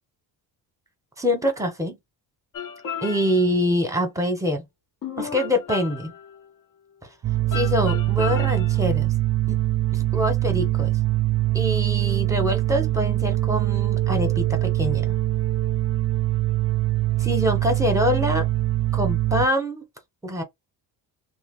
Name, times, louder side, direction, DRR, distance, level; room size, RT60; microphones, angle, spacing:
voice 1, 1.2-2.0 3.0-4.6 5.2-6.1 7.5-9.1 9.5-9.6 9.9-10.9 11.5-15.2 17.2-18.5 18.9-19.8 20.2-20.4, left 1 dB, 5° right, 0.9 m, -25 dB
sound 1, 2.5-3.6 5.0-6.5 7.5-9.0, left 7 dB, 50° left, 0.7 m, -34 dB
sound 2, 7.2-19.5, right 16 dB, 30° right, 0.4 m, -23 dB
2.8 x 2.1 x 3.6 m
cardioid pair, 110°, 43 cm